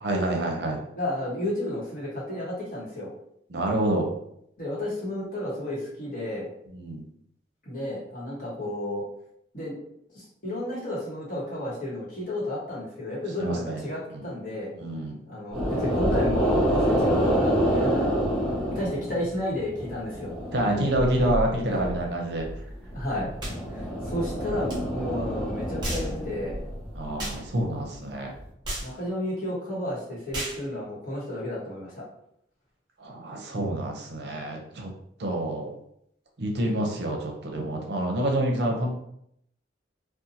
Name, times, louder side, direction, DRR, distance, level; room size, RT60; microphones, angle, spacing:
voice 1, 0.0-0.8 3.5-4.1 6.7-7.0 13.4-13.8 14.1-14.3 14.7-15.2 20.5-22.5 26.9-28.3 33.0-34.9 35.2-35.7 36.4-38.9, right 1 dB, 65° right, 1 dB, 0.6 m, -27 dB
voice 2, 1.0-3.1 4.6-6.5 7.6-9.0 9.5-9.8 10.1-14.7 15.3-18.2 18.5-20.3 21.7-21.8 22.9-23.3 23.7-26.6 28.8-32.0, left 1 dB, 50° left, -6 dB, 1.1 m, -32 dB
sound 1, 15.5-19.3 19.6-22.0 22.4-27.1, equal, 5° left, 1.1 m, -27 dB
sound 2, 23.4-23.6 24.7-24.8 25.8-26.1 27.2-27.4 28.6-28.9 30.3-30.6, right 1 dB, 25° right, 0.8 m, -33 dB
2.7 x 2.2 x 2.7 m, 0.73 s
head